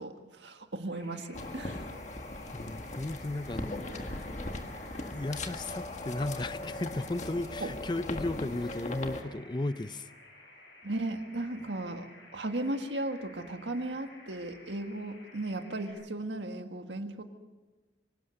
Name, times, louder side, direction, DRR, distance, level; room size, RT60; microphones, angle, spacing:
voice 1, 0.0-1.9 7.6-7.7 10.8-12.1 12.3-17.2, right 2 dB, 75° right, 1.7 m, -36 dB
sound 1, 0.9-15.9, left 1 dB, 75° left, 7.9 m, -54 dB
sound 2, 1.3-9.2, left 2 dB, 40° left, 1.6 m, -39 dB
voice 2, 2.5-3.9 5.0-10.1, left 2 dB, 25° left, 0.6 m, -35 dB
24.5 x 18.0 x 6.6 m
head